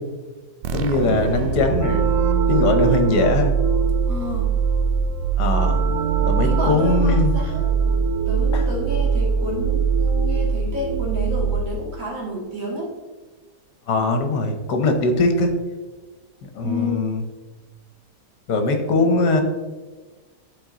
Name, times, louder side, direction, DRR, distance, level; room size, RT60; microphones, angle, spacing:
sound 1, 0.6-12.1, right 5 dB, 90° right, 1.2 m, -22 dB
voice 1, 0.7-2.2 2.5-3.6 5.4-5.8 6.2-7.3 8.5-8.7 13.9-15.5 16.5-17.2 18.5-19.4, left 3 dB, 75° left, 5 dB, 1.5 m, -21 dB
sound 2, 1.8-12.2, right 7 dB, 70° right, 0.7 m, -28 dB
voice 2, 4.1-4.5 6.4-7.7 8.3-12.9 16.6-17.1 18.9-19.1, left 1 dB, 50° right, -4 dB, 2.3 m, -30 dB
11.5 x 4.3 x 3.7 m, 1.3 s
omnidirectional pair, 1.8 m